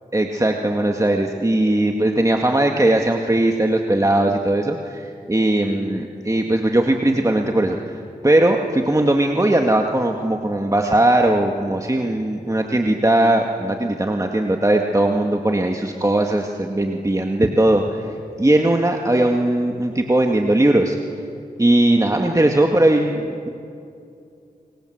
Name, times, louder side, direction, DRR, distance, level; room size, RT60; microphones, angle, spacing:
voice 1, 0.1-21.0 21.6-23.5, right 1 dB, 20° right, 2 dB, 2.0 m, -19 dB
29.5 x 24.5 x 8.0 m, 2.5 s
cardioid pair, 55°, 16 cm